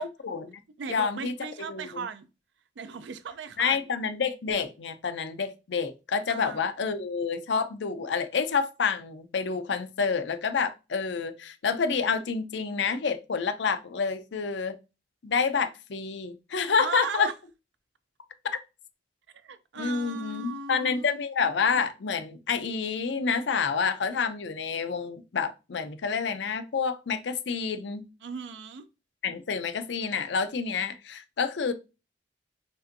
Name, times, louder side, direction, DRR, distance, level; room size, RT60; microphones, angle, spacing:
voice 1, 0.0-0.6 0.9-1.3 1.7-2.1 3.6-14.8 15.2-17.3 19.8-28.1 29.2-31.7, left 5 dB, 75° left, 0.5 m, -28 dB
voice 2, 0.8-2.3 2.8-3.8 6.3-6.7 16.8-17.3 19.4-21.2 28.2-28.9, right 5 dB, 75° right, 0.4 m, -37 dB
5.3 x 2.5 x 2.6 m
head